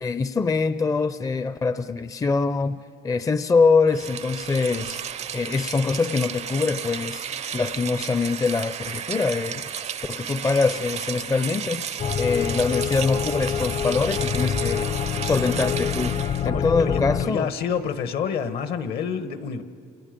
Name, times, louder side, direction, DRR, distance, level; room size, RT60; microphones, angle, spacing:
voice 1, 0.0-5.0 5.3-7.2 7.5-9.6 10.1-11.8 12.2-17.5, left 4 dB, 20° left, 13 dB, 0.5 m, -24 dB
Rain, 3.9-16.5, right 8 dB, 40° right, 0.5 m, -33 dB
sound 1, 12.0-17.3, left 8 dB, 50° left, 0.9 m, -26 dB
voice 2, 16.4-19.6, left 7 dB, 70° left, 11 dB, 1.3 m, -28 dB
29.0 x 28.0 x 5.2 m, 2.3 s
cardioid pair, 110°, 17 cm